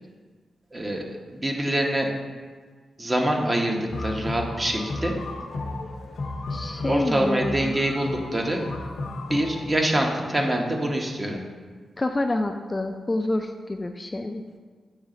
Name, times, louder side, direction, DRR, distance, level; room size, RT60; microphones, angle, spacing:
voice 1, 0.7-2.1 3.0-5.2 6.7-8.6 9.3-11.4, right 1 dB, 25° right, 1 dB, 0.9 m, -25 dB
sound 1, 3.9-10.0, left 2 dB, 70° left, 0.7 m, -34 dB
voice 2, 6.5-7.8 12.0-14.4, left 2 dB, 25° left, 5 dB, 0.3 m, -28 dB
8.0 x 3.2 x 3.8 m, 1.5 s
cardioid pair, 65°, 0 cm